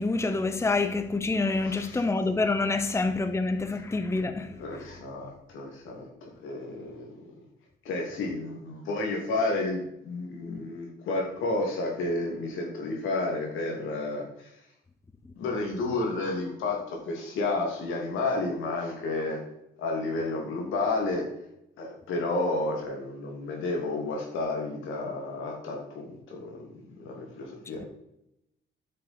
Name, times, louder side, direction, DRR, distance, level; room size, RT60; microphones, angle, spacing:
voice 1, 0.0-4.8 27.8-27.9, left 3 dB, 15° left, 0.7 m, -27 dB
voice 2, 1.6-2.0 4.6-7.1 7.8-14.5 15.4-19.4 19.8-21.3 21.8-26.7 27.0-27.9, left 2 dB, 85° left, 2.7 m, -31 dB
9.8 x 6.8 x 4.3 m
cardioid pair, 90°, 20 cm